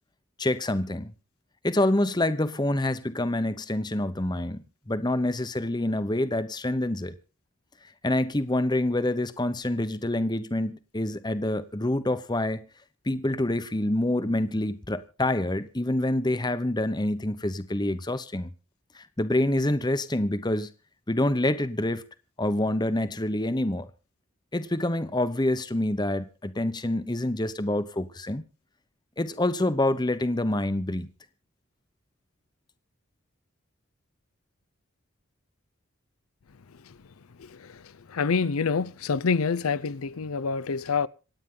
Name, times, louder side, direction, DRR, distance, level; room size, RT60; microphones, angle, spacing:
voice 1, 0.4-1.1 1.6-7.1 8.0-12.7 13.0-18.5 18.9-20.7 21.1-22.0 22.4-23.9 24.5-28.4 29.2-31.1, left 1 dB, 20° left, 0.9 m, -27 dB
voice 2, 37.4-41.1, left 5 dB, 85° left, 0.6 m, -27 dB
27.0 x 9.2 x 3.8 m
head